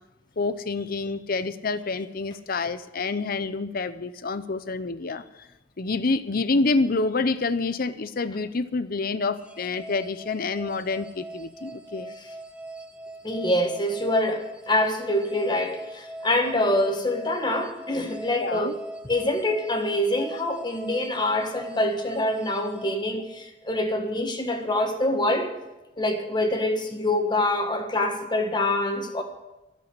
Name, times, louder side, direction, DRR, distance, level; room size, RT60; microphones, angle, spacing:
voice 1, 0.4-5.2 5.8-12.1 18.4-18.7, left 3 dB, 50° left, 0.7 m, -27 dB
sound 1, 9.4-23.8, right 1 dB, 5° right, 0.8 m, -41 dB
voice 2, 13.2-25.5 26.0-29.2, left 1 dB, 25° left, 1.5 m, -25 dB
12.5 x 7.6 x 9.8 m
head